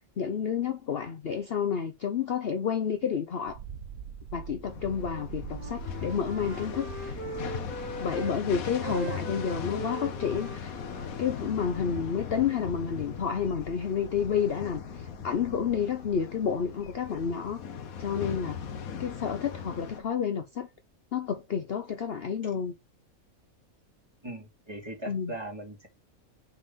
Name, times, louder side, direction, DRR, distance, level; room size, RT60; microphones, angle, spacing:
voice 1, 0.2-3.6 4.3-7.2 8.0-10.7 11.2-17.6 18.0-18.6 19.0-20.7 21.1-22.7 25.1-25.3, left 7 dB, 50° left, 0.8 m, -30 dB
sound 1, 3.5-19.2 19.5-20.1, right 7 dB, 65° right, 1.3 m, -47 dB
sound 2, 4.7-20.0, left 7 dB, 80° left, 1.4 m, -39 dB
Wind instrument woodwind instrument, 5.0-8.4 8.7-12.6, right 2 dB, 10° left, 2.0 m, -42 dB
voice 2, 24.2-25.9, right 2 dB, 20° right, 2.7 m, -39 dB
6.4 x 3.9 x 5.3 m
omnidirectional pair, 1.5 m